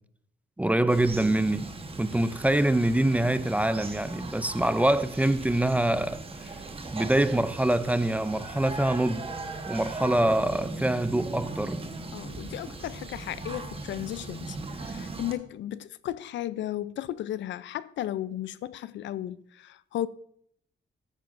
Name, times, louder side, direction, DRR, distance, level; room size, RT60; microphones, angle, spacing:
voice 1, 0.6-1.7 2.0-6.2 6.9-9.3 9.7-11.8, right 1 dB, 5° right, 0.4 m, -25 dB
sound 1, 0.9-15.3, right 3 dB, 30° right, 1.1 m, -39 dB
voice 2, 12.1-20.1, left 12 dB, 80° left, 0.4 m, -35 dB
14.5 x 9.0 x 2.5 m
cardioid pair, 115°, 19 cm